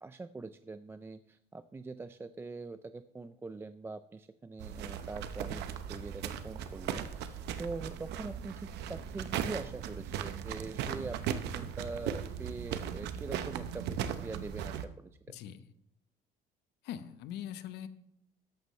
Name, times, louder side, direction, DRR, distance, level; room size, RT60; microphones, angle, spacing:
voice 1, 0.0-5.6 5.9-15.2, right 3 dB, 15° right, 12 dB, 0.4 m, -43 dB
sound 1, 4.6-14.9, right 9 dB, 80° right, 0.8 m, -38 dB
voice 2, 15.3-15.7 16.8-17.9, left 10 dB, 80° left, 11 dB, 0.9 m, -42 dB
13.5 x 11.0 x 3.2 m, 0.76 s
cardioid pair, 110°, 17 cm